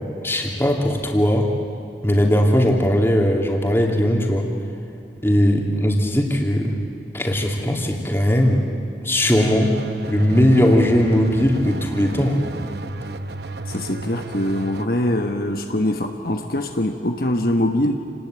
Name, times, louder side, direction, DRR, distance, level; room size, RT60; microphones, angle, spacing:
voice 1, 0.2-1.5 2.0-4.5 5.2-6.7 7.1-8.6 9.0-9.7 10.1-12.4, equal, 15° left, 0 dB, 2.8 m, -18 dB
sound 1, 9.2-14.9, right 2 dB, 70° right, 0.9 m, -33 dB
voice 2, 13.7-18.0, left 1 dB, 55° left, 4 dB, 1.3 m, -23 dB
28.5 x 19.5 x 9.0 m, 2.7 s
head